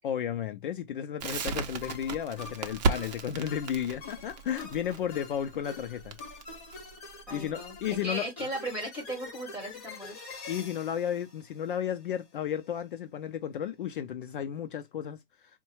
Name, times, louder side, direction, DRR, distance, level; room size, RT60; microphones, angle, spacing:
voice 1, 0.0-6.2 7.3-8.3 10.5-15.2, left 9 dB, 50° left, 0.6 m, -33 dB
Crackle, 1.2-8.0, right 4 dB, 40° right, 0.6 m, -34 dB
sound 1, 1.8-12.2, left 3 dB, 20° left, 2.4 m, -46 dB
voice 2, 7.3-7.7 8.0-10.2, right 1 dB, 5° right, 1.4 m, -36 dB
4.4 x 2.1 x 2.9 m
hypercardioid pair, 170°, 32 cm